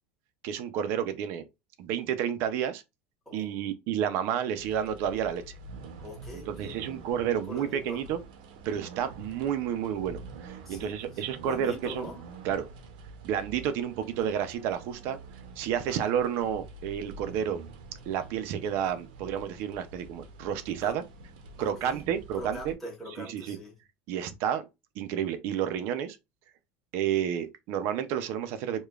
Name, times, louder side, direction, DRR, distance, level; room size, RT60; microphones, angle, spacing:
voice 1, 0.4-1.4 1.8-2.8 3.3-5.4 6.5-8.2 8.6-12.1 12.4-12.7 13.2-15.2 15.6-17.6 18.1-21.0 21.6-22.7 23.3-23.6 24.1-24.6 25.0-26.2 26.9-28.8, right 9 dB, 55° right, 0.4 m, -30 dB
voice 2, 3.2-3.7 6.0-6.9 7.5-8.0 10.6-12.2 15.8-16.0 20.8-20.9 21.6-22.0 22.3-23.8, left 1 dB, 5° left, 1.2 m, -43 dB
sound 1, 4.5-22.7, right 3 dB, 90° right, 0.7 m, -47 dB
4.9 x 2.2 x 2.3 m
cardioid pair, 160°, 5 cm